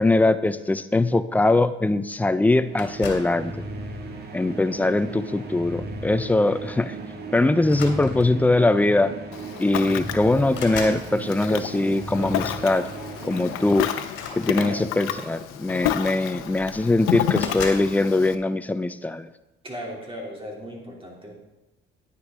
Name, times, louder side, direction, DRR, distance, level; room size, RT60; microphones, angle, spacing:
voice 1, 0.0-3.6 4.3-6.9 7.3-9.1 9.6-12.9 13.2-13.9 14.3-19.3, left 2 dB, 5° left, 13 dB, 0.4 m, -22 dB
sound 1, 2.5-14.4, right 2 dB, 50° right, 1.5 m, -37 dB
sound 2, 2.8-3.4 4.3-4.6 6.1-6.3 6.5-6.7 7.6-8.5 9.5-9.6 9.9-11.1 14.0-15.1 16.0-16.1 16.4-16.9 17.3-17.9, left 5 dB, 60° left, 2.0 m, -37 dB
Ocean, 9.3-18.3, left 11 dB, 90° left, 0.7 m, -31 dB
voice 2, 14.5-14.9 19.6-21.3, equal, 25° right, -1 dB, 2.9 m, -36 dB
10.0 x 9.5 x 3.7 m, 0.98 s
cardioid pair, 100°, 21 cm